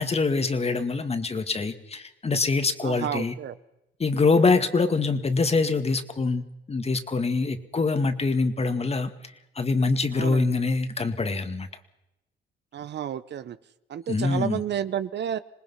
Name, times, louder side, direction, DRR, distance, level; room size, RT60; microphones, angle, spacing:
voice 1, 0.0-3.3 4.0-9.1 9.6-11.7 14.1-14.6, left 4 dB, 30° left, 9 dB, 2.1 m, -24 dB
voice 2, 2.8-3.5 10.1-10.5 12.7-13.6 13.9-15.4, right 10 dB, 60° right, 14 dB, 1.0 m, -31 dB
26.5 x 19.5 x 5.7 m, 0.91 s
cardioid pair, 90°, 20 cm